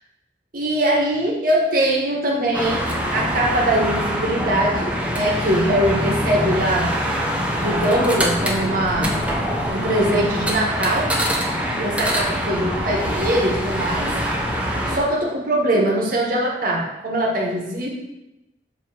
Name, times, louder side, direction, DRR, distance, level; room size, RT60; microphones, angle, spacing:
voice 1, 0.5-2.8 3.1-6.9 7.6-9.2 9.7-11.2 11.8-14.1 14.9-17.9, right 1 dB, 50° right, -3 dB, 1.6 m, -22 dB
sound 1, 2.5-15.0, equal, 5° right, 0.9 m, -24 dB
7.7 x 3.4 x 6.0 m, 0.96 s
head